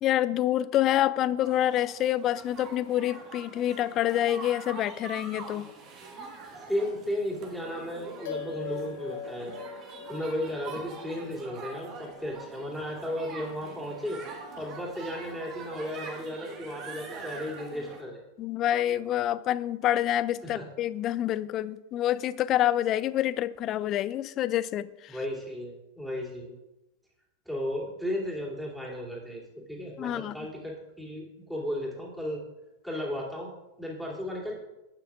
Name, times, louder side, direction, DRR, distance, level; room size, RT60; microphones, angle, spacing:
voice 1, 0.0-5.6 18.4-25.2 30.0-30.3, left 12 dB, 35° left, 17 dB, 0.4 m, -27 dB
sound 1, 1.4-18.0, right 3 dB, 35° right, 1.6 m, -44 dB
voice 2, 6.5-9.5 10.1-18.2 20.4-20.6 25.1-26.5 27.5-29.4 29.7-32.4 32.8-33.5 33.8-34.5, left 1 dB, ahead, -3 dB, 2.9 m, -34 dB
sound 2, 8.2-12.9, left 8 dB, 55° left, 0.9 m, -42 dB
12.0 x 8.9 x 2.4 m, 0.97 s
figure-of-eight pair, 90°, 0 cm